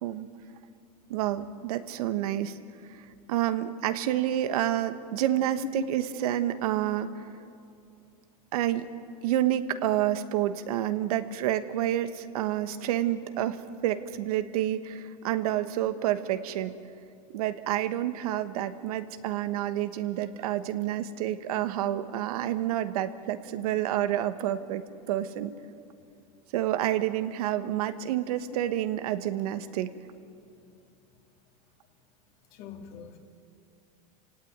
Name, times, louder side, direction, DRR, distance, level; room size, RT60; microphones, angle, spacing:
voice 1, 1.1-2.6 3.3-7.2 8.5-8.9 9.2-16.8 17.3-25.5 26.5-29.9, right 12 dB, 80° right, 10 dB, 1.3 m, -29 dB
voice 2, 32.5-33.2, left 8 dB, 50° left, 3 dB, 2.9 m, -41 dB
27.5 x 17.5 x 9.4 m, 2.5 s
supercardioid pair, 130°, 19 cm